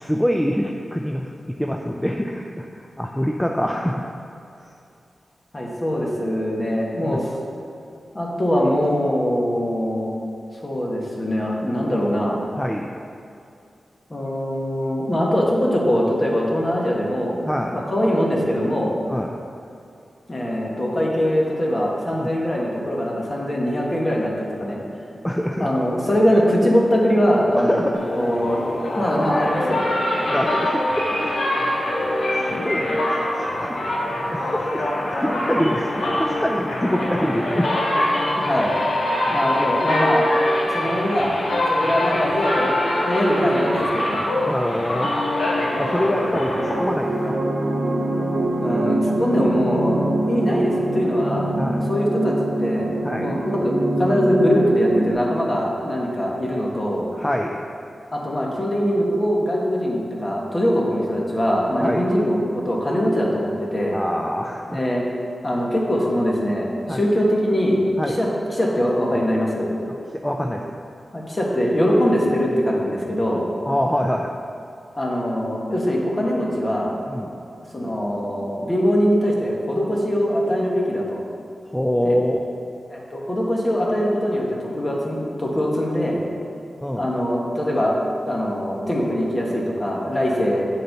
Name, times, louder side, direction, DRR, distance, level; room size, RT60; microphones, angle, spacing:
voice 1, 0.0-4.0 4.6-4.7 7.0-7.2 12.6-12.9 17.4-17.8 19.1-19.3 22.1-22.3 25.2-25.7 27.5-28.0 30.2-31.4 32.0-34.0 34.3-34.8 35.2-38.1 44.5-45.1 45.8-47.4 51.6-51.9 53.0-53.3 57.1-57.6 61.8-62.0 63.9-64.8 66.9-67.1 68.0-68.2 70.1-70.6 73.7-74.4 77.1-77.3 81.7-82.4 86.8-87.1, equal, 5° left, 2 dB, 0.4 m, -25 dB
voice 2, 5.5-7.3 8.1-10.1 10.6-12.4 14.1-17.4 17.7-18.9 20.3-25.1 25.6-27.8 28.1-28.7 28.9-29.8 38.4-38.8 39.3-40.3 40.7-41.4 41.7-44.2 48.6-51.5 51.9-52.9 53.2-57.1 58.1-64.0 64.7-65.1 65.4-69.7 71.1-73.4 75.0-76.9 77.7-81.2 82.0-82.2 82.9-86.2 87.0-88.0 88.3-90.6, equal, 30° left, -3 dB, 1.4 m, -22 dB
sound 1, 27.9-47.3, left 1 dB, 65° left, 1.3 m, -24 dB
sound 2, 45.6-55.1, right 1 dB, 85° right, 0.8 m, -24 dB
7.6 x 4.1 x 6.7 m, 2.5 s
wide cardioid pair, 90°, 0 cm